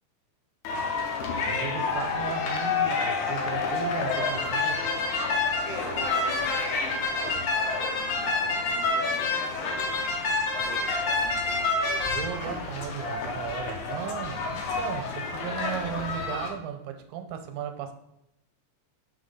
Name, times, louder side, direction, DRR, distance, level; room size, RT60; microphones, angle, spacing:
sound 1, 0.7-16.5, left 3 dB, 85° left, 2.5 m, -28 dB
voice 1, 1.4-4.9 12.1-17.9, right 8 dB, 90° right, 6 dB, 2.1 m, -36 dB
voice 2, 5.8-11.9 12.4-12.7, right 4 dB, 70° right, 1 dB, 0.9 m, -44 dB
5.1 x 3.9 x 5.4 m, 0.85 s
omnidirectional pair, 3.5 m